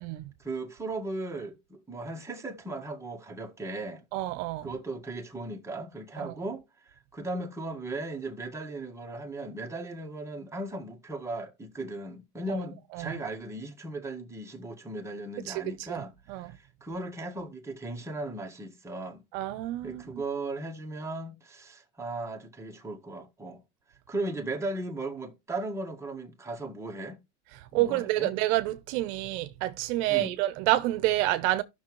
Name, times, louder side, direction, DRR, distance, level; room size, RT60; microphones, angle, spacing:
voice 1, 0.4-4.0 4.6-19.2 19.8-23.6 24.1-27.2 27.7-28.3 30.1-30.3, right 2 dB, 10° right, 1.6 m, -37 dB
voice 2, 4.1-4.7 6.2-6.4 12.5-12.6 12.9-13.1 15.5-15.6 15.9-16.0 16.3-16.5 19.3-20.2 27.7-31.6, right 16 dB, 65° right, 0.9 m, -28 dB
14.0 x 6.1 x 3.1 m
supercardioid pair, 120°, 36 cm